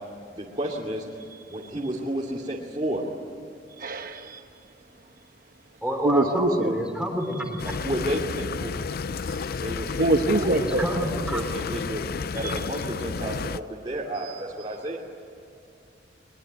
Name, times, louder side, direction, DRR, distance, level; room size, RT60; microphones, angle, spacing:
voice 1, 0.3-1.1 1.5-3.0 7.6-8.7 9.6-10.7 11.3-12.0 12.3-15.0, right 1 dB, 30° right, -4 dB, 2.7 m, -31 dB
voice 2, 3.8-4.4 6.0-6.7 10.0-10.8 12.4-12.5, right 2 dB, 55° right, 4 dB, 1.1 m, -24 dB
voice 3, 5.8-7.7 10.6-11.4, equal, 5° right, 3 dB, 3.3 m, -28 dB
sound 1, 7.6-13.6, left 5 dB, 55° left, 0.5 m, -31 dB
22.5 x 22.0 x 9.4 m, 2.7 s
head